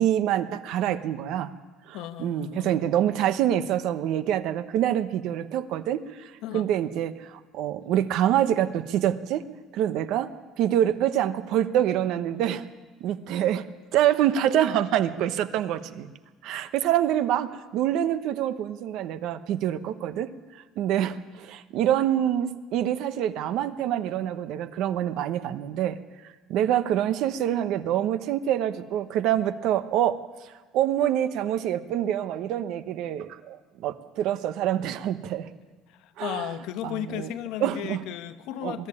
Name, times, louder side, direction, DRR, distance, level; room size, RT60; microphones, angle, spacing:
voice 1, 0.0-1.5 1.9-9.4 9.7-10.3 10.6-12.6 13.0-16.1 16.4-20.3 20.8-26.0 26.5-30.2 30.7-35.5 36.2-36.5 36.8-37.3 37.6-38.0 38.6-38.7, right 11 dB, 60° right, 12 dB, 1.0 m, -26 dB
voice 2, 1.9-2.8 6.4-6.7 35.9-38.9, left 12 dB, 70° left, 10 dB, 1.1 m, -35 dB
22.0 x 13.5 x 9.8 m, 1.3 s
cardioid pair, 165°, 0 cm